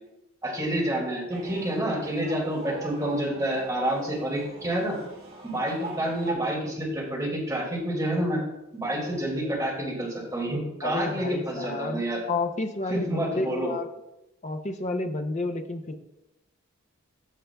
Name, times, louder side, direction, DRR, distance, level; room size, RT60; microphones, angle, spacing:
voice 1, 0.4-5.0 5.4-8.4 8.7-12.2 12.9-13.7, right 1 dB, 15° right, -3 dB, 2.2 m, -28 dB
sound 1, 1.3-6.3, right 2 dB, 45° right, 1.7 m, -41 dB
voice 2, 10.8-13.9 14.4-16.0, left 2 dB, 30° left, 5 dB, 0.5 m, -30 dB
14.0 x 5.9 x 2.3 m, 0.93 s
head